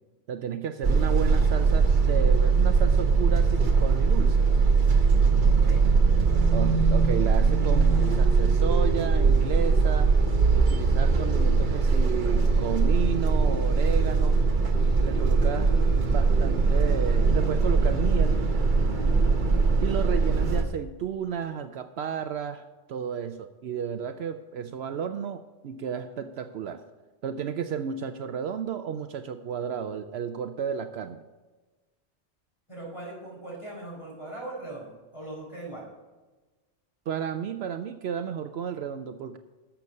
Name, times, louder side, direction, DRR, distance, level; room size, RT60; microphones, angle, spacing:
voice 1, 0.3-4.5 6.5-10.1 10.5-14.4 15.0-15.7 16.1-18.4 19.8-26.8 27.2-31.2 37.1-39.4, right 8 dB, 70° right, 9 dB, 0.8 m, -32 dB
sound 1, 0.8-20.6, right 4 dB, 45° right, 1.0 m, -21 dB
voice 2, 5.4-5.9 32.7-35.9, right 2 dB, 25° left, -4 dB, 4.5 m, -40 dB
13.0 x 7.1 x 5.4 m, 1.2 s
omnidirectional pair, 1.2 m